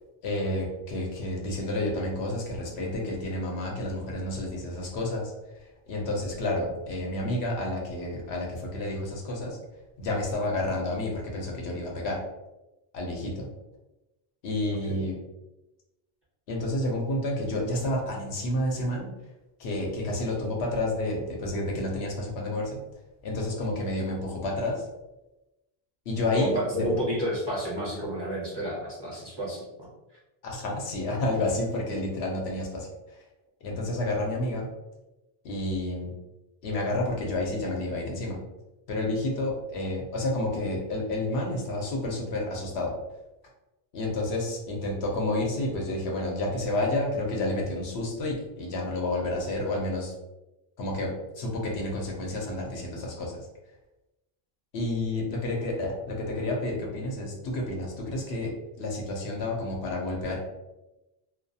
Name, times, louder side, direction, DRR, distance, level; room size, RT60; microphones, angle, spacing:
voice 1, 0.2-5.3 5.9-9.6 10.0-12.2 12.9-13.5 14.4-15.2 16.5-19.1 19.6-22.8 23.2-24.8 26.1-26.9 30.4-32.9 33.6-34.7 35.4-36.1 36.6-38.4 38.9-42.9 43.9-50.1 50.8-53.4 54.7-60.4, left 1 dB, 80° left, -1 dB, 0.9 m, -30 dB
voice 2, 26.3-29.9, equal, 30° right, -7 dB, 0.6 m, -30 dB
2.3 x 2.3 x 2.6 m, 0.99 s
omnidirectional pair, 1.1 m